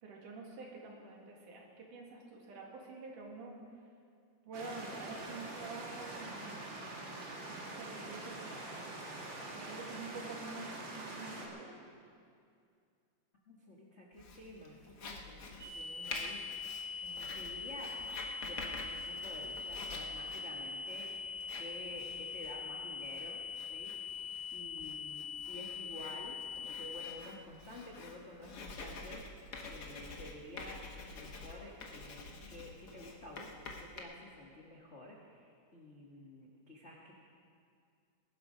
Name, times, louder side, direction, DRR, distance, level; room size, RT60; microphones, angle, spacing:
voice 1, 0.0-3.6 4.5-6.7 7.5-9.0 9.5-11.8, right 3 dB, 70° right, -1 dB, 3.5 m, -48 dB
sound 1, 4.5-11.5, right 2 dB, 40° right, 2.2 m, -45 dB
voice 2, 13.5-17.9 18.4-21.1 21.6-23.4 23.7-29.4 29.7-30.8 31.1-37.1, left 1 dB, 45° left, -3 dB, 0.9 m, -51 dB
Writing, 14.2-34.0, left 3 dB, 90° left, 0.8 m, -48 dB
sound 2, 15.6-27.0, left 5 dB, 15° right, 4.8 m, -42 dB
19.0 x 12.0 x 5.1 m, 2.3 s
omnidirectional pair, 3.8 m